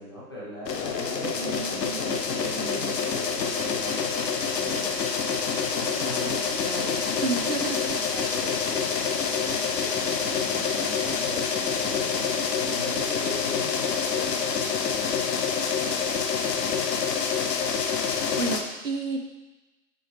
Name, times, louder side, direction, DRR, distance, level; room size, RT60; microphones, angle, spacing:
voice 1, 0.0-5.0 5.7-9.0 9.3-12.2 12.5-17.0, equal, 15° left, -9 dB, 0.7 m, -41 dB
sound 1, 0.7-18.6, left 6 dB, 90° left, 0.9 m, -27 dB
voice 2, 1.4-2.9 7.2-7.9 18.0-19.3, right 4 dB, 50° right, 4 dB, 0.7 m, -32 dB
7.7 x 3.8 x 3.3 m, 1.1 s
hypercardioid pair, 170°, 48 cm